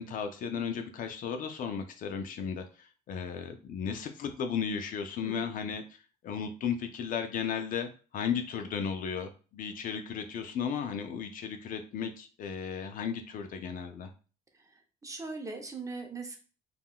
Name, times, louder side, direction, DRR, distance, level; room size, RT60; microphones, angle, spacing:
voice 1, 0.0-5.8 6.2-14.1, left 7 dB, 55° left, 7 dB, 0.4 m, -35 dB
voice 2, 14.5-16.4, right 3 dB, 20° right, 3 dB, 0.6 m, -40 dB
3.5 x 2.3 x 2.2 m, 0.36 s
cardioid pair, 110°, 17 cm